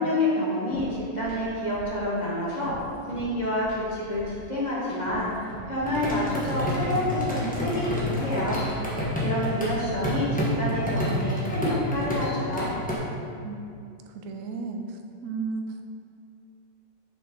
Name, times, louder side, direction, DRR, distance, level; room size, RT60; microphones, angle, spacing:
voice 1, 0.0-2.7 3.1-8.6 9.2-12.7, left 1 dB, 25° left, -7 dB, 1.2 m, -28 dB
sound 1, 0.7-0.8 1.2-1.4 1.7-3.3 3.6-5.7 6.0-8.1 8.4-10.2, equal, 85° left, 2.3 m, -44 dB
sound 2, 5.8-13.0, left 1 dB, 5° left, 0.8 m, -29 dB
voice 2, 14.1-15.8, right 4 dB, 80° right, 4 dB, 0.7 m, -34 dB
6.4 x 5.6 x 3.8 m, 2.5 s
omnidirectional pair, 2.1 m